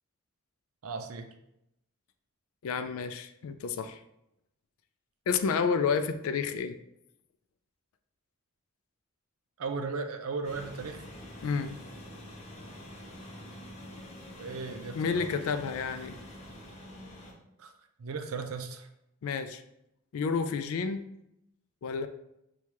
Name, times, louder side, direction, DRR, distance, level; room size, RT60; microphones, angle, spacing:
voice 1, 0.8-1.3 9.6-11.0 14.3-15.3 17.6-17.7 18.0-18.9, right 4 dB, 80° right, 7 dB, 0.5 m, -36 dB
voice 2, 2.6-4.0 5.3-6.7 11.4-11.8 14.9-16.2 19.2-19.6 20.1-21.0 21.8-22.1, left 5 dB, 70° left, 10 dB, 0.3 m, -30 dB
sound 1, 10.4-17.3, left 1 dB, 30° left, 0.6 m, -46 dB
6.2 x 2.3 x 2.8 m, 0.82 s
head